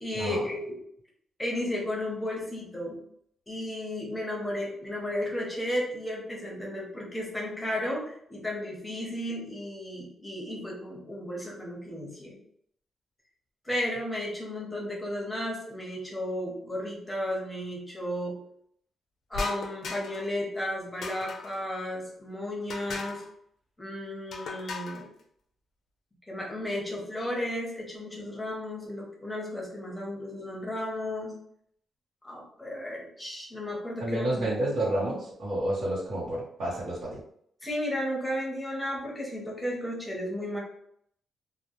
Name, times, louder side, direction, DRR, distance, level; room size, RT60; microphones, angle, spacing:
voice 1, 0.0-0.7 1.4-3.0 3.5-12.4 13.6-18.4 19.3-23.2 23.8-25.1 26.3-31.4 32.2-34.3 37.6-40.6, left 1 dB, 10° left, -3 dB, 0.7 m, -34 dB
sound 1, 19.3-20.3 21.0-21.6 22.7-23.3 24.3-25.0, left 4 dB, 65° left, 0.4 m, -37 dB
voice 2, 34.0-37.2, right 1 dB, 70° right, -9 dB, 0.8 m, -30 dB
2.1 x 2.0 x 2.9 m, 0.68 s
cardioid pair, 135°, 0 cm